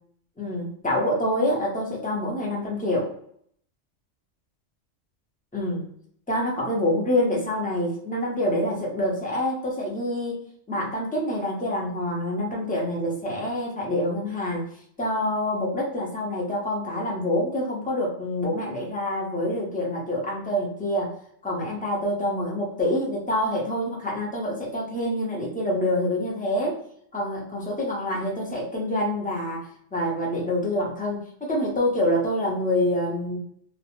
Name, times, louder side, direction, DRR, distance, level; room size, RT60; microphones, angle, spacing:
voice 1, 0.4-3.1 5.5-5.9 6.3-14.7 15.0-21.1 21.4-26.8 27.1-33.4, left 1 dB, 10° left, -3 dB, 0.4 m, -26 dB
2.3 x 2.0 x 2.9 m, 0.64 s
omnidirectional pair, 1.2 m